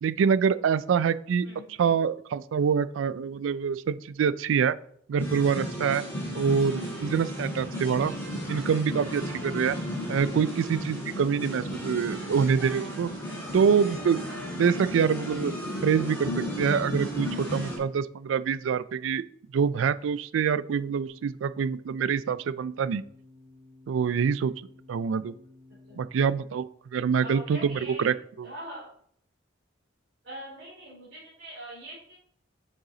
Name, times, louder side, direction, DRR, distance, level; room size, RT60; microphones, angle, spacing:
voice 1, 0.0-1.5 1.8-4.8 5.1-6.0 6.3-8.1 8.5-9.8 10.1-13.1 13.5-14.2 14.6-15.5 15.8-19.2 19.5-23.0 23.9-24.5 24.9-25.3 26.0-26.6 26.9-28.1, right 6 dB, 90° right, 17 dB, 0.3 m, -25 dB
voice 2, 1.4-1.9 25.9-26.0 27.2-28.1 28.4-28.8 30.2-32.1, right 1 dB, 70° right, -8 dB, 2.6 m, -42 dB
sound 1, 5.2-17.8, equal, 10° left, 2.7 m, -34 dB
sound 2, 21.1-26.5, left 2 dB, 40° left, 1.8 m, -54 dB
7.1 x 5.4 x 3.8 m, 0.66 s
head